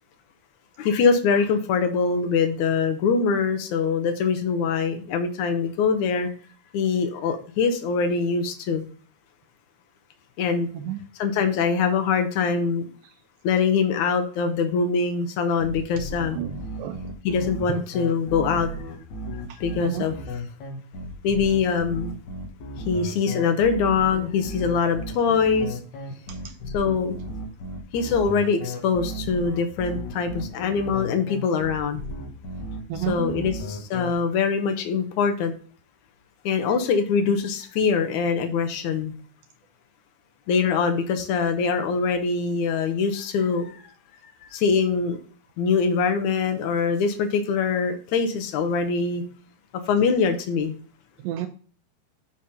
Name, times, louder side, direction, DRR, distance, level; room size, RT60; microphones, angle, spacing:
voice 1, 0.8-6.3 6.7-8.8 10.4-10.7 11.2-12.9 13.4-16.4 17.2-18.7 19.6-20.1 21.2-22.1 22.9-25.8 26.7-27.2 27.9-32.0 33.0-35.5 36.4-39.1 40.5-43.8 44.5-45.2 45.6-49.2 49.9-50.7, left 5 dB, 80° left, 1.7 m, -23 dB
sound 1, 15.6-34.1, equal, 55° left, 2.6 m, -34 dB
voice 2, 16.3-17.0 19.5-20.0 26.3-26.5 32.9-33.4 51.2-51.5, right 11 dB, 90° right, 2.0 m, -32 dB
9.1 x 4.3 x 4.9 m
omnidirectional pair, 4.8 m